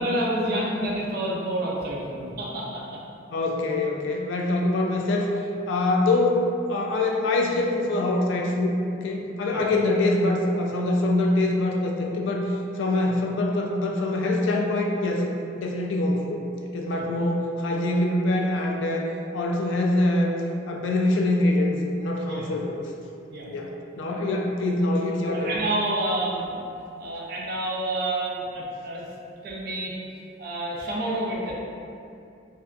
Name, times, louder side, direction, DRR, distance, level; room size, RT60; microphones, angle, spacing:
voice 1, 0.0-2.8 9.5-9.6 16.9-17.0 22.2-22.5 23.3-23.5 25.3-26.6 27.0-29.0 29.4-29.9 30.4-31.5, right 1 dB, 55° right, -4 dB, 0.4 m, -28 dB
voice 2, 3.3-8.8 9.0-15.3 15.6-16.4 16.7-19.1 19.3-20.3 20.7-22.9 23.5-25.5, left 2 dB, 85° left, 0 dB, 0.3 m, -24 dB
2.6 x 2.2 x 2.4 m, 2.5 s
head